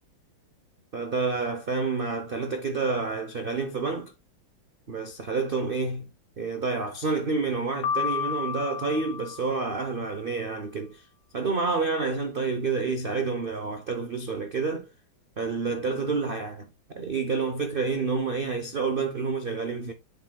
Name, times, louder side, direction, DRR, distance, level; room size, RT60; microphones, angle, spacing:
voice 1, 0.9-4.1 4.9-6.1 6.4-11.1 11.3-14.9 15.4-16.6 16.9-19.9, right 4 dB, 80° right, 0.5 m, -29 dB
Piano, 7.8-10.0, left 6 dB, 90° left, 2.0 m, -31 dB
7.6 x 7.2 x 2.3 m
omnidirectional pair, 2.2 m